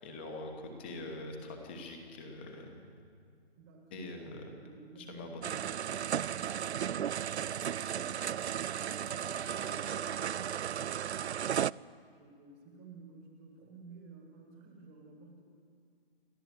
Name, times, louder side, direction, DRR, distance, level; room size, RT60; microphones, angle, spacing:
voice 1, 0.0-2.8 3.9-4.4 5.1-5.3, left 2 dB, 10° left, 4 dB, 1.2 m, -43 dB
voice 2, 3.6-5.5 8.7-11.3 12.1-15.4, right 3 dB, 10° right, 1 dB, 1.5 m, -54 dB
sound 1, 5.4-11.7, right 9 dB, 80° right, 0.5 m, -35 dB
Bowed string instrument, 7.0-11.1, right 3 dB, 65° right, 1.5 m, -51 dB
29.0 x 12.0 x 8.3 m, 2.2 s
hypercardioid pair, 170°, 32 cm